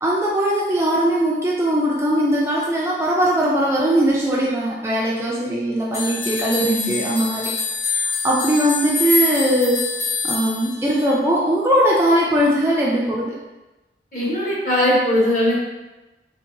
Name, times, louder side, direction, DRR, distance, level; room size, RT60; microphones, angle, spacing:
voice 1, 0.0-7.5 7.9-9.8 10.2-13.3, right 1 dB, 15° right, -4 dB, 0.3 m, -20 dB
sound 1, 5.9-11.2, left 4 dB, 80° left, 1.1 m, -25 dB
voice 2, 6.6-7.0 14.1-15.6, left 1 dB, 45° left, -7 dB, 1.2 m, -20 dB
3.7 x 2.7 x 2.5 m, 1.1 s
head